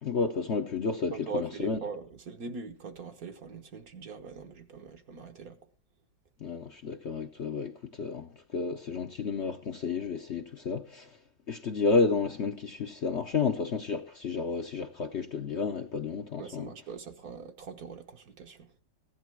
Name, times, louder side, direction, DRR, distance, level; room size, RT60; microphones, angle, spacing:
voice 1, 0.0-1.8 6.4-11.2 11.5-16.7, left 4 dB, 50° left, 0.9 m, -31 dB
voice 2, 1.1-5.6 16.4-18.7, right 5 dB, 55° right, 1.5 m, -41 dB
16.0 x 11.0 x 4.5 m
omnidirectional pair, 1.9 m